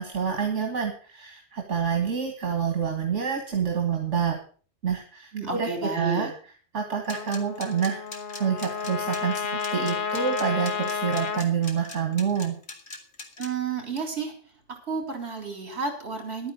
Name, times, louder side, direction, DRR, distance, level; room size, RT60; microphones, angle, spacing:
voice 1, 0.0-4.4 4.8-6.3 6.7-8.0 8.4-9.4 9.7-12.6, right 7 dB, 80° right, 3 dB, 2.0 m, -27 dB
voice 2, 5.3-6.3 13.4-14.3 14.7-16.5, right 4 dB, 60° right, 4 dB, 4.0 m, -31 dB
sound 1, 7.0-13.5, left 3 dB, 60° left, 2.3 m, -40 dB
Trumpet, 7.1-11.4, left 5 dB, 45° left, 1.3 m, -31 dB
11.5 x 9.4 x 6.4 m, 0.41 s
omnidirectional pair, 1.2 m